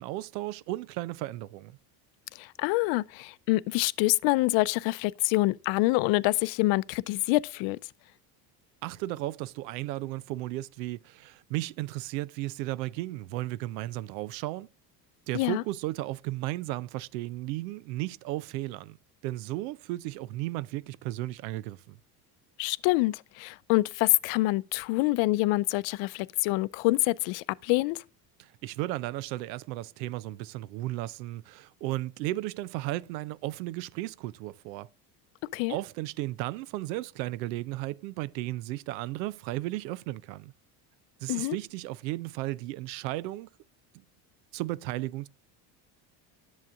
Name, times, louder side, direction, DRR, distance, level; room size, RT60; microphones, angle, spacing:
voice 1, 0.0-1.7 8.8-14.7 15.3-19.0 19.2-22.0 28.4-34.9 35.7-40.5 41.2-43.5 44.5-45.3, right 17 dB, 80° right, 0.6 m, -34 dB
voice 2, 2.4-7.8 15.3-15.6 22.6-28.0 35.5-35.8 41.3-41.6, left 21 dB, 65° left, 0.6 m, -26 dB
10.5 x 7.3 x 2.4 m
hypercardioid pair, 80°, 50 cm